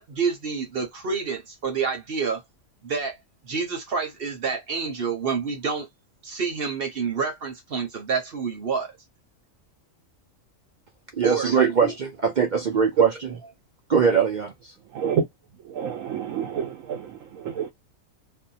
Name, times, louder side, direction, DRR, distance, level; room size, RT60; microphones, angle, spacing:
voice 1, 0.0-2.4 2.8-3.2 3.4-5.9 6.2-8.9 11.2-11.9, right 5 dB, 50° right, 0.9 m, -28 dB
voice 2, 11.2-13.1 13.9-14.7, right 6 dB, 65° right, 0.4 m, -21 dB
voice 3, 14.9-15.3 15.6-17.7, right 7 dB, 85° right, 1.0 m, -29 dB
2.6 x 2.1 x 2.6 m
omnidirectional pair, 1.4 m